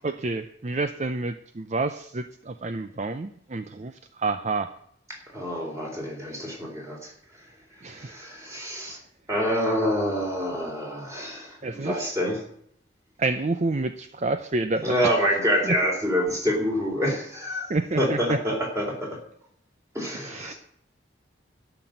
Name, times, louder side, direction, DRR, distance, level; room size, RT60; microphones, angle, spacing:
voice 1, 0.0-4.7 7.8-8.2 11.6-12.0 13.2-15.1 15.6-15.8 17.7-18.4 20.1-20.5, right 3 dB, 40° right, 10 dB, 0.6 m, -29 dB
voice 2, 5.1-7.1 7.9-9.0 9.3-12.4 14.8-17.7 18.0-19.1 19.9-20.5, equal, 15° right, 0 dB, 3.9 m, -27 dB
12.5 x 6.1 x 9.2 m, 0.68 s
head